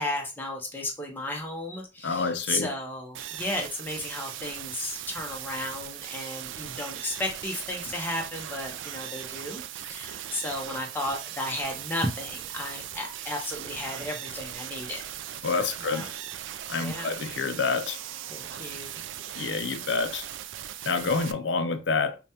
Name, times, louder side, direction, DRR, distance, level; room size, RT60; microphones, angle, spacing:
voice 1, 0.0-15.0 15.4-15.5 15.9-16.0 16.8-17.2 18.3-19.0, left 1 dB, 10° left, 0.7 m, -34 dB
voice 2, 2.0-2.7 15.4-16.1 16.7-18.0 19.3-20.3 20.9-22.2, left 4 dB, 65° left, 0.5 m, -28 dB
sound 1, 3.1-21.3, right 11 dB, 75° right, 0.3 m, -39 dB
5.1 x 2.2 x 2.8 m
head